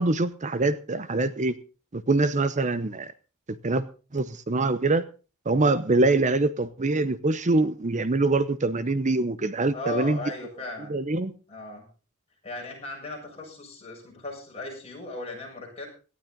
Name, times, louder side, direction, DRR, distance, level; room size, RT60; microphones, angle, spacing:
voice 1, 0.0-1.6 1.9-3.1 3.5-3.9 4.1-5.0 5.4-10.2 10.9-11.3, right 2 dB, 35° right, 15 dB, 0.8 m, -24 dB
voice 2, 9.7-11.0 11.5-11.9 12.4-15.9, left 3 dB, 30° left, -1 dB, 7.4 m, -37 dB
18.0 x 12.5 x 3.9 m, 0.35 s
head